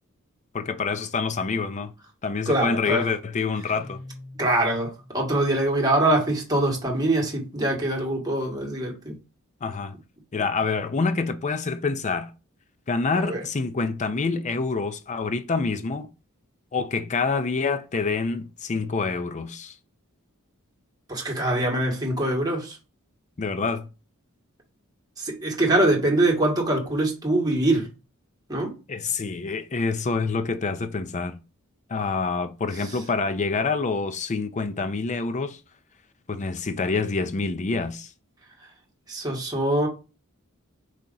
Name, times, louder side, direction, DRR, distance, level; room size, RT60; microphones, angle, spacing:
voice 1, 0.5-1.9 2.2-4.0 9.6-10.0 10.3-12.3 12.9-16.1 16.7-19.8 23.4-23.9 28.9-31.4 31.9-35.6 36.3-38.1, left 4 dB, 35° left, 0.5 m, -27 dB
voice 2, 2.5-3.0 4.4-9.2 13.2-13.4 21.1-22.8 25.2-27.9 28.5-28.7 39.1-39.9, right 1 dB, 20° right, 1.5 m, -23 dB
Guitar, 3.6-5.3, left 1 dB, 65° left, 2.1 m, -44 dB
4.8 x 2.8 x 3.9 m
head